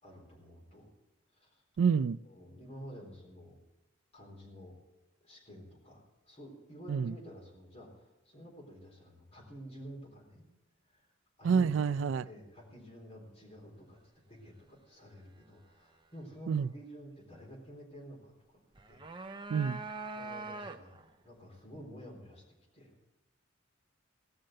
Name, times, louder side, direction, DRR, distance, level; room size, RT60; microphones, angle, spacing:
voice 1, 0.0-0.9 1.3-1.6 2.2-3.6 4.1-4.8 5.2-10.5 10.9-11.1 11.4-14.0 14.3-19.0 20.1-22.4 22.7-22.9, equal, 35° left, 3.9 m, -51 dB
voice 2, 1.8-2.2 6.9-7.1 11.4-12.2 16.5-16.7 19.5-19.8, right 6 dB, 70° right, 0.3 m, -28 dB
sound 1, 18.8-21.1, right 3 dB, 25° right, 0.6 m, -42 dB
16.5 x 6.5 x 7.7 m
head